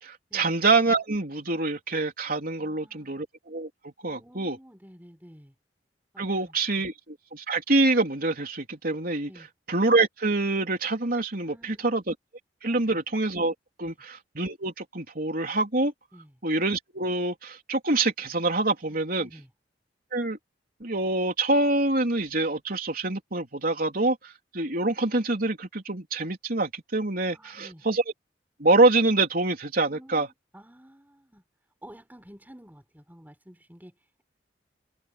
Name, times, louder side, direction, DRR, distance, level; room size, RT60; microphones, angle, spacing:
voice 1, 0.0-4.6 6.2-9.3 9.7-12.1 12.6-13.5 13.8-15.9 16.4-19.3 20.1-20.4 20.8-28.0 28.6-30.3, right 2 dB, 55° right, 3.8 m, -25 dB
voice 2, 2.6-3.1 4.0-5.5 6.1-6.9 9.3-9.5 11.4-11.9 12.7-13.0 13.8-13.9 16.1-16.4 18.8-19.5 27.3-27.9 29.9-31.4 31.8-34.2, equal, 10° right, 5.9 m, -51 dB
head